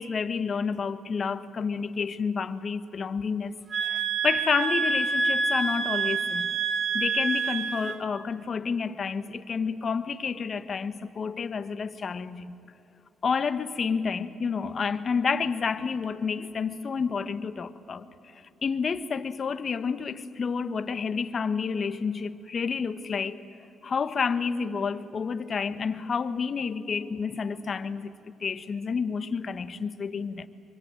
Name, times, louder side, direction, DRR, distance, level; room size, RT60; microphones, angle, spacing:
voice 1, 0.0-3.5 3.8-6.5 6.9-12.6 13.2-18.0 18.6-23.4 23.8-28.1 28.4-30.5, left 5 dB, 45° left, 1.3 m, -29 dB
sound 1, 3.7-8.0, right 4 dB, 45° right, 1.7 m, -27 dB
25.0 x 24.0 x 9.0 m
cardioid pair, 90°, 0 cm